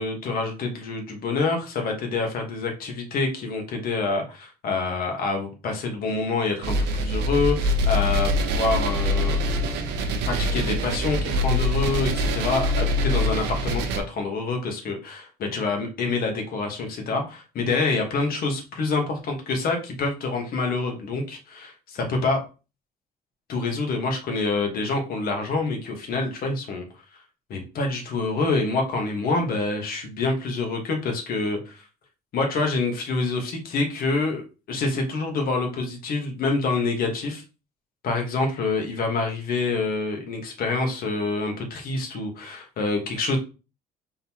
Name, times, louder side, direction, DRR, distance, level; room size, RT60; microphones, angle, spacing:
voice 1, 0.0-9.4 10.3-22.4 23.5-26.8 27.5-31.8 32.3-34.4 34.7-37.4 38.0-43.4, left 3 dB, 60° left, 2 dB, 1.4 m, -26 dB
sound 1, 6.6-14.0, left 1 dB, 90° right, 0.8 m, -24 dB
3.9 x 3.7 x 2.9 m, 0.32 s
cardioid pair, 110°, 17 cm